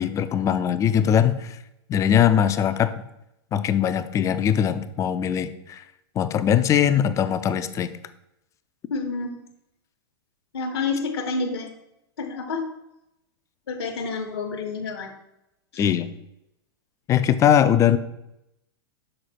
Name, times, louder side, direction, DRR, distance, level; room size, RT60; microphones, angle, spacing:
voice 1, 0.0-1.6 1.9-2.9 3.5-5.8 6.2-7.9 15.8-16.1 17.1-18.0, left 9 dB, 25° left, 11 dB, 0.4 m, -21 dB
voice 2, 8.9-9.3 10.5-11.7 12.2-12.6 13.7-15.1 15.7-15.9, left 4 dB, 80° left, 2 dB, 0.9 m, -29 dB
6.5 x 3.9 x 4.3 m, 0.84 s
hypercardioid pair, 110°, 13 cm